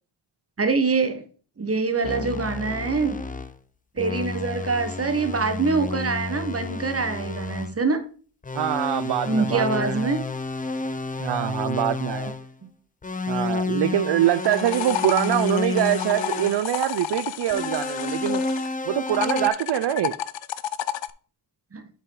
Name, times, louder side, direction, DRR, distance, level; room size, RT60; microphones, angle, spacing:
voice 1, 0.6-1.2 1.6-3.2 4.0-8.0 9.2-10.2 21.7-21.8, right 4 dB, 30° right, 9 dB, 1.2 m, -24 dB
sound 1, 2.0-3.6 4.0-7.8 8.4-12.5 13.0-16.6 17.5-19.5, left 3 dB, 15° left, 0.5 m, -30 dB
voice 2, 8.5-10.1 11.2-12.3 13.3-18.4 18.9-20.2, right 12 dB, 60° right, 12 dB, 0.5 m, -24 dB
sound 2, 14.1-18.7 19.1-21.1, left 11 dB, 65° left, 0.6 m, -31 dB
7.7 x 5.5 x 3.8 m, 0.40 s
wide cardioid pair, 90°, 48 cm